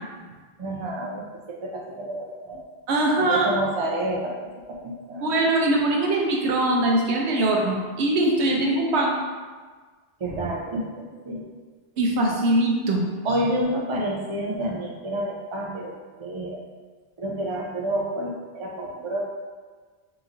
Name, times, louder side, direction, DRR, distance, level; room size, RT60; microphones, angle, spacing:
voice 1, 0.6-1.2 1.5-2.7 3.2-4.4 4.8-5.3 10.2-10.8 11.2-11.5 13.2-15.9 16.2-16.6 17.2-19.2, right 1 dB, 45° right, -1 dB, 0.4 m, -29 dB
voice 2, 2.9-3.5 5.2-9.1 12.0-13.0, right 2 dB, 85° right, 0 dB, 0.9 m, -22 dB
3.8 x 3.1 x 2.5 m, 1.4 s
omnidirectional pair, 1.1 m